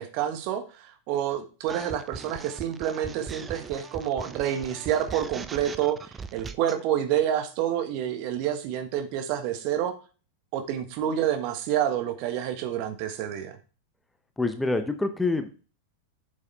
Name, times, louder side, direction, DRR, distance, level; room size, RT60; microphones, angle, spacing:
voice 1, 0.0-10.0 10.5-13.5, right 10 dB, 45° right, 7 dB, 1.4 m, -28 dB
sound 1, 1.7-6.8, right 5 dB, 15° right, 0.6 m, -40 dB
voice 2, 14.4-15.5, left 3 dB, 10° left, 8 dB, 0.9 m, -26 dB
8.2 x 7.1 x 3.4 m, 0.35 s
figure-of-eight pair, 90°, 0 cm